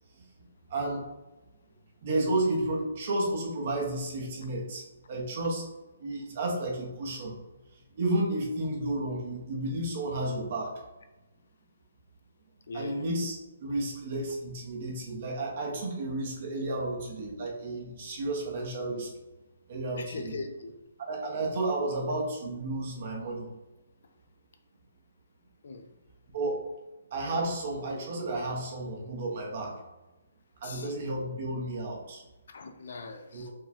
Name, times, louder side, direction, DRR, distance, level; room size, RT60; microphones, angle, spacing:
voice 1, 0.7-1.0 2.0-5.6 6.0-7.3 7.9-10.8 12.7-19.1 19.7-20.4 21.0-23.5 26.3-26.6 27.1-29.8 30.6-32.2 33.3-33.5, right 2 dB, 35° right, -1 dB, 0.9 m, -32 dB
voice 2, 12.7-13.0 20.0-20.8 25.6-25.8 30.6-30.9 32.5-33.5, left 3 dB, 50° left, 6 dB, 0.5 m, -40 dB
4.7 x 2.3 x 4.2 m, 1.1 s
hypercardioid pair, 180°, 0 cm